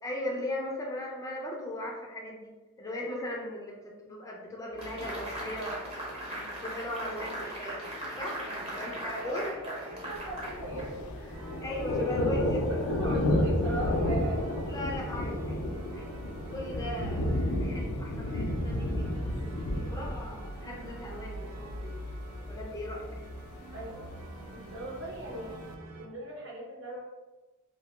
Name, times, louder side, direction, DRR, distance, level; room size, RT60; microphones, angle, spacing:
voice 1, 0.0-2.5 2.8-5.8 6.3-7.8 8.1-8.4 8.7-9.5 11.6-12.6 14.6-15.6 15.9-16.1 16.5-19.2 19.7-21.9 22.5-23.2, left 1 dB, 15° left, -2 dB, 0.3 m, -38 dB
sound 1, 4.8-11.2, right 1 dB, 25° right, 0.6 m, -39 dB
voice 2, 8.4-11.6 12.1-14.4 23.7-25.6 26.0-27.0, right 1 dB, 60° right, -3 dB, 0.8 m, -39 dB
Thunder, 10.2-25.7, left 1 dB, 90° left, 0.4 m, -32 dB
sound 2, 11.3-26.1, right 2 dB, 85° right, 0.4 m, -49 dB
2.6 x 2.1 x 3.0 m, 1.2 s
head